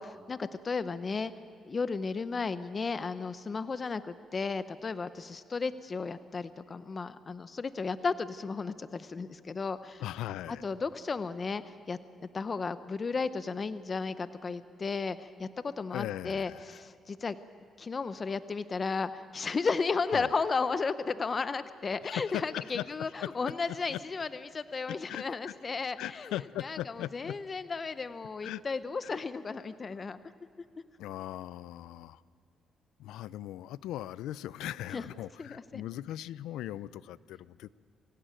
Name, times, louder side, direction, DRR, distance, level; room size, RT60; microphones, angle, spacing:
voice 1, 0.0-1.3 1.7-10.0 10.5-17.4 17.8-26.3 26.6-30.2 34.9-35.0 35.4-35.8, left 4 dB, 35° left, 13 dB, 0.7 m, -34 dB
voice 2, 10.0-10.7 15.9-16.8 20.1-20.3 22.0-23.3 23.7-24.0 24.9-25.5 26.0-27.4 28.4-28.6 29.0-29.2 31.0-32.2 33.0-37.7, left 13 dB, 90° left, 19 dB, 0.4 m, -39 dB
24.0 x 16.5 x 8.9 m, 2.4 s
cardioid pair, 90°, 0 cm